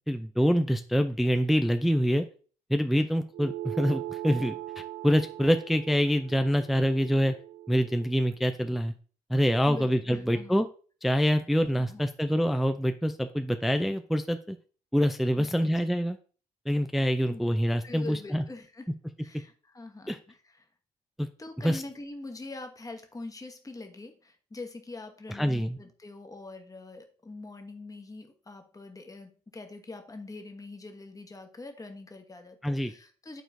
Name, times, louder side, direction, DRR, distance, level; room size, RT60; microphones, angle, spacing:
voice 1, 0.1-2.2 2.7-7.3 7.7-8.9 9.3-10.7 11.0-14.6 14.9-16.2 16.7-18.4 20.1-20.2 21.2-21.3 21.6-21.8 25.4-25.8 32.6-32.9, equal, ahead, 8 dB, 0.4 m, -26 dB
sound 1, 3.3-8.1, right 14 dB, 50° right, 0.5 m, -40 dB
voice 2, 9.7-10.6 11.8-12.0 15.4-16.0 17.2-17.5 17.8-18.9 19.2-20.7 21.4-33.4, left 2 dB, 20° left, 5 dB, 1.1 m, -43 dB
10.5 x 4.4 x 2.7 m, 0.40 s
figure-of-eight pair, 40°, 19 cm